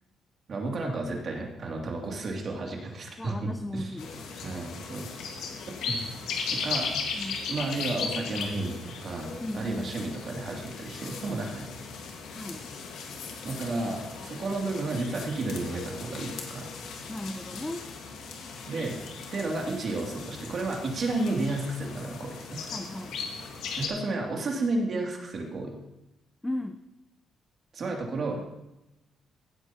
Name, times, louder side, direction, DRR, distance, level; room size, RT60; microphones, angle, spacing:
voice 1, 0.5-3.9 4.4-5.1 5.8-6.0 6.6-6.9 7.5-11.8 13.4-16.7 18.7-19.0 19.3-22.4 23.8-25.8 27.7-28.4, right 2 dB, 50° right, 0 dB, 2.6 m, -32 dB
voice 2, 3.2-4.4 7.1-7.5 9.4-10.0 12.3-12.7 17.1-17.9 22.7-23.2 26.4-26.8, left 1 dB, 10° left, 8 dB, 0.6 m, -36 dB
sound 1, 4.0-23.9, left 5 dB, 85° left, 1.6 m, -37 dB
16.5 x 8.2 x 2.9 m, 0.95 s
cardioid pair, 90°, 0 cm